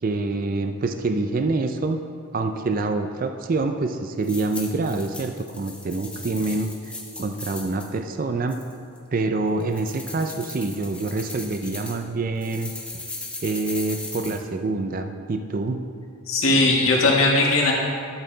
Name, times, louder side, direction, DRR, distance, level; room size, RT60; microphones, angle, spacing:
voice 1, 0.0-2.0 2.3-6.7 7.2-8.6 9.1-12.7 13.4-15.9, right 3 dB, 40° right, 6 dB, 0.4 m, -26 dB
sound 1, 4.2-7.9 8.5-9.0 9.6-12.0 12.4-14.4, left 2 dB, 5° left, 0.9 m, -38 dB
voice 2, 16.3-17.7, left 2 dB, 75° left, -3 dB, 1.8 m, -18 dB
12.0 x 6.6 x 3.9 m, 2.5 s
head